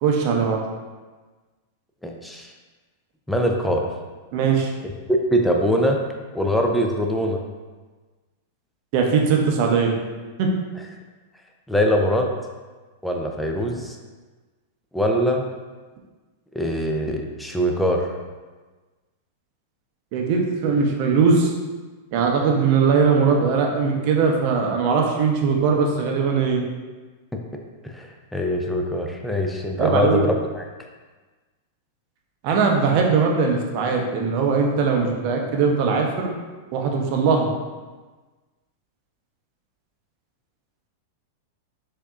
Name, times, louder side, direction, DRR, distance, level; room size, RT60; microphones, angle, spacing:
voice 1, 0.0-0.6 4.3-4.7 8.9-9.9 10.4-10.5 20.1-21.5 22.1-26.6 29.8-30.2 32.4-36.4 36.7-37.5, right 5 dB, 50° right, 1 dB, 0.6 m, -20 dB
voice 2, 2.0-2.5 3.3-3.9 5.3-6.0 6.3-7.4 11.7-12.3 13.0-14.0 14.9-15.5 16.5-18.1 27.8-30.6, equal, 5° left, 1 dB, 0.5 m, -22 dB
4.5 x 2.7 x 2.4 m, 1.3 s
hypercardioid pair, 100°, 0 cm